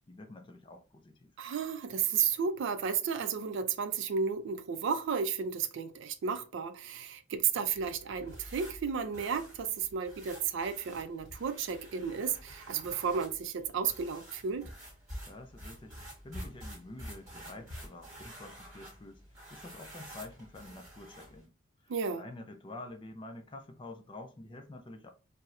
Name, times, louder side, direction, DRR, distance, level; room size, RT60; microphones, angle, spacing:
voice 1, 0.1-1.3 15.2-19.2 19.5-21.5 21.8-25.1, left 2 dB, 25° left, 0.4 m, -48 dB
voice 2, 1.4-14.7 21.9-22.2, right 6 dB, 60° right, 0.3 m, -33 dB
sound 1, 7.7-21.5, equal, 15° right, 1.1 m, -49 dB
4.2 x 2.0 x 2.3 m
head